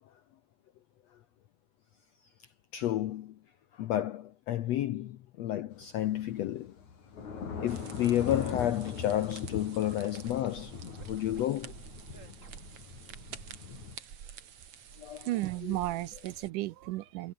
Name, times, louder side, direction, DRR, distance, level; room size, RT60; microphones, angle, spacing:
voice 1, 2.7-3.3 3.7-6.7 7.6-10.7 11.1-11.7 15.0-15.3 15.6-15.8, left 12 dB, 75° left, 1.5 m, -31 dB
Thunder / Rain, 5.7-14.0, left 6 dB, 55° left, 5.0 m, -41 dB
Scratching (performance technique), 7.5-9.4 9.8-11.4 12.1-12.8, right 3 dB, 20° right, 3.3 m, -55 dB
sound 1, 7.7-16.5, right 8 dB, 50° right, 2.4 m, -50 dB
voice 2, 15.3-17.3, right 17 dB, 80° right, 2.1 m, -34 dB
omnidirectional pair, 4.1 m